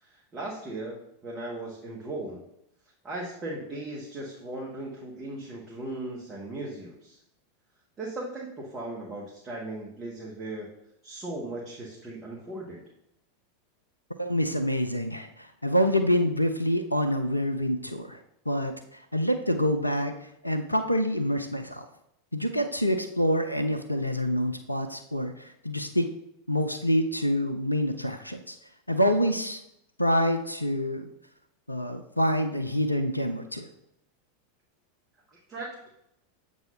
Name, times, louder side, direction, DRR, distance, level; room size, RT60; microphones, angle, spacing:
voice 1, 0.0-0.9 1.2-2.4 3.0-7.2 8.0-10.7 11.0-12.8 35.3-35.9, right 2 dB, 20° right, -4 dB, 1.3 m, -37 dB
voice 2, 14.2-18.2 18.5-18.7 19.1-20.1 20.4-21.9 22.3-26.1 26.5-28.6 28.9-29.6 30.0-31.1 31.7-33.7, equal, 90° left, 7 dB, 0.4 m, -26 dB
7.7 x 2.7 x 5.6 m, 0.79 s
figure-of-eight pair, 85°, 0 cm